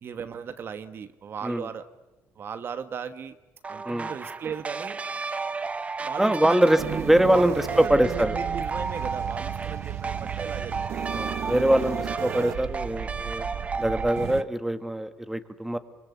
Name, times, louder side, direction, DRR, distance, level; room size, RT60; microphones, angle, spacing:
voice 1, 0.0-1.9 2.4-3.3 3.7-5.0 6.0-11.0, right 7 dB, 45° right, 10 dB, 1.3 m, -37 dB
sound 1, 3.6-14.4, right 4 dB, 25° right, 1.1 m, -33 dB
voice 2, 6.2-8.4 11.1-13.5 13.8-15.8, right 1 dB, 5° right, 10 dB, 1.7 m, -23 dB
sound 2, 6.8-14.4, right 10 dB, 65° right, 1.2 m, -34 dB
26.0 x 25.0 x 8.4 m, 1.1 s
cardioid pair, 115°, 5 cm